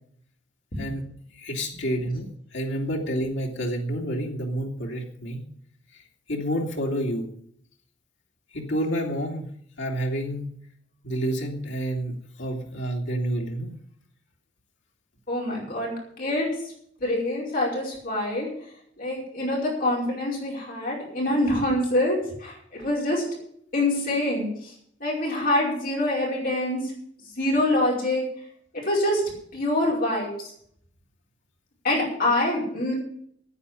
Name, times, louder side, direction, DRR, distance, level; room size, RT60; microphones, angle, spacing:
voice 1, 1.4-5.4 5.9-6.0 6.3-7.3 8.5-9.5 9.8-10.5 11.0-13.7, right 1 dB, 75° left, 1 dB, 2.7 m, -29 dB
voice 2, 15.3-16.5 17.0-18.5 19.0-23.2 23.7-24.7 25.0-26.9 27.4-28.2 28.7-29.2 29.5-30.5 31.8-32.9, left 1 dB, 50° left, -3 dB, 5.0 m, -25 dB
9.8 x 8.8 x 9.7 m, 0.66 s
head